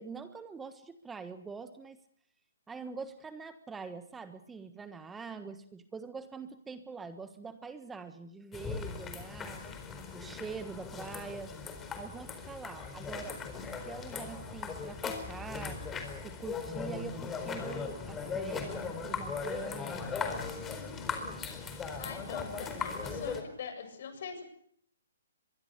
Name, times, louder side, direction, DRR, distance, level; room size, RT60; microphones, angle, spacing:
voice 1, 0.0-2.0 2.7-9.6 10.1-11.5 12.0-13.4 13.8-15.8 16.2-20.0, right 5 dB, 10° right, 10 dB, 1.4 m, -44 dB
sound 1, 8.5-23.4, left 5 dB, 15° left, 4.4 m, -38 dB
voice 2, 22.0-24.4, left 6 dB, 55° left, 8 dB, 7.9 m, -43 dB
24.0 x 23.0 x 6.8 m, 0.64 s
hypercardioid pair, 145°, 0 cm